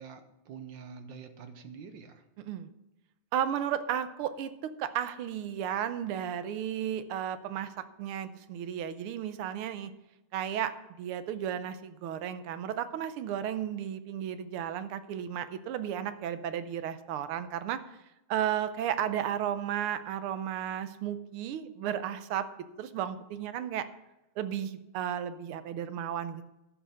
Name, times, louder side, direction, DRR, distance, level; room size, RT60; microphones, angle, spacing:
voice 1, 0.0-2.2, right 6 dB, 65° right, 9 dB, 1.4 m, -46 dB
voice 2, 3.3-9.9 10.3-17.8 18.3-22.5 22.8-23.9 24.4-26.5, right 10 dB, 85° right, 12 dB, 1.6 m, -34 dB
11.0 x 6.3 x 6.4 m, 0.95 s
omnidirectional pair, 2.4 m